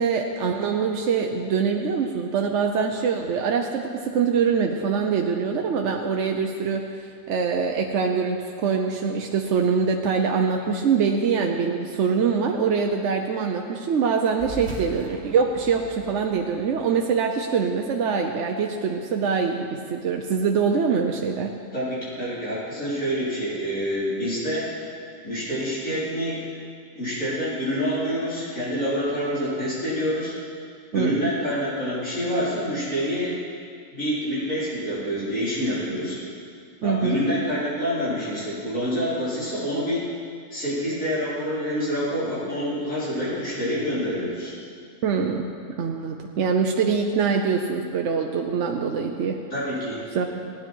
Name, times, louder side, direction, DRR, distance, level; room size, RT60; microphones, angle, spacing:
voice 1, 0.0-21.5 30.9-31.3 36.8-37.2 45.0-45.5 45.8-49.4 50.1-50.5, right 5 dB, 65° right, 2 dB, 1.0 m, -24 dB
sound 1, 14.3-19.2, right 4 dB, 45° right, 1.6 m, -42 dB
voice 2, 21.7-24.7 25.2-26.4 26.9-30.3 30.9-33.4 33.9-36.2 36.8-40.1 40.5-44.5 49.5-50.0, equal, 80° left, -10 dB, 4.7 m, -27 dB
16.5 x 10.0 x 4.5 m, 2.3 s
omnidirectional pair, 1.4 m